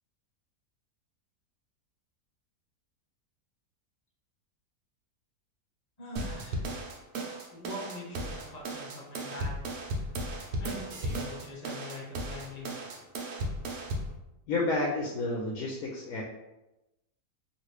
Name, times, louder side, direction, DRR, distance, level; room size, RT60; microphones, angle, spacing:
voice 1, 6.0-6.6 7.5-9.7 10.0-10.1 10.6-12.8, left 1 dB, 40° left, -4 dB, 0.6 m, -43 dB
sound 1, 6.2-14.1, right 1 dB, 80° right, 1.1 m, -35 dB
voice 2, 14.5-16.2, left 2 dB, 70° left, -1 dB, 1.0 m, -30 dB
3.1 x 2.6 x 3.1 m, 0.96 s
omnidirectional pair, 1.7 m